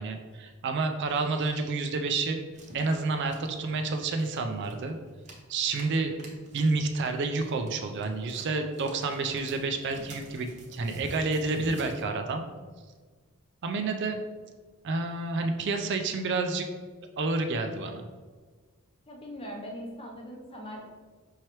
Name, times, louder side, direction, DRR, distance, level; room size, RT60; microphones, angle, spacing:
voice 1, 0.0-2.4 2.7-5.0 5.5-6.2 6.5-12.4 13.6-14.2 14.8-16.7 17.2-18.1, right 3 dB, 50° right, 6 dB, 0.4 m, -29 dB
sound 1, 2.5-12.0, right 1 dB, 30° right, 0.8 m, -48 dB
voice 2, 19.1-20.9, equal, 25° left, 0 dB, 0.7 m, -40 dB
5.6 x 3.1 x 3.0 m, 1.5 s
head